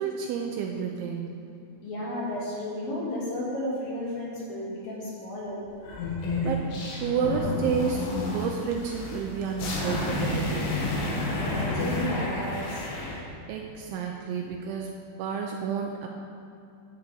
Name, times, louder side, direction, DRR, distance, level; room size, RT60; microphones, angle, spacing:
voice 1, 0.0-1.4 6.4-6.7 7.0-10.8 13.5-16.1, right 6 dB, 80° right, 1 dB, 2.9 m, -30 dB
voice 2, 1.8-5.7 11.2-12.9, left 1 dB, 50° left, -6 dB, 3.5 m, -33 dB
sound 1, 5.8-13.2, left 2 dB, 65° left, 3.9 m, -30 dB
11.0 x 6.8 x 8.2 m, 2.7 s
omnidirectional pair, 6.0 m